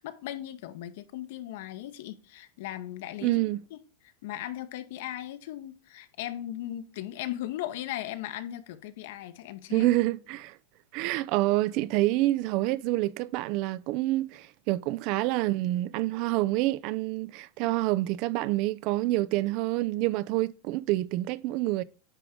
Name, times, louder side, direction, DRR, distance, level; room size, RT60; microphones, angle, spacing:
voice 1, 0.0-3.8 4.2-9.9, left 13 dB, 65° left, 0.9 m, -38 dB
voice 2, 3.2-3.6 9.7-10.6 10.9-21.8, right 17 dB, 45° right, 0.3 m, -27 dB
9.9 x 3.5 x 5.2 m
supercardioid pair, 160°, 0 cm